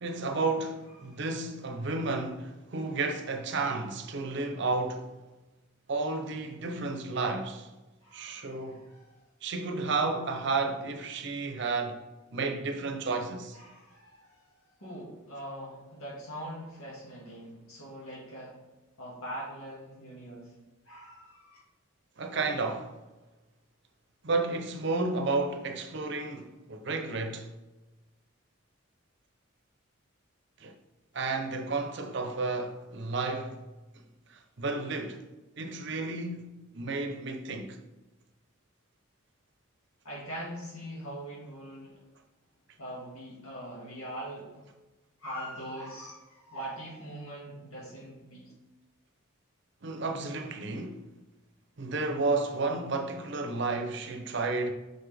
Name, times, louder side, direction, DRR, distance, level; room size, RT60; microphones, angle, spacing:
voice 1, 0.0-5.1 5.9-7.7 8.1-8.9 9.4-12.0 12.3-13.6 22.2-22.9 24.2-27.5 30.6-30.7 31.1-33.6 34.3-35.2 35.6-36.5 36.7-37.8 49.8-51.0 51.8-54.7, right 3 dB, 55° right, 0.7 m, -32 dB
voice 2, 8.0-9.2 13.5-18.6 19.0-20.5 20.9-21.6 40.0-42.0 42.8-44.7 45.2-48.5, right 1 dB, 85° left, 1.9 m, -42 dB
5.9 x 5.2 x 3.3 m
head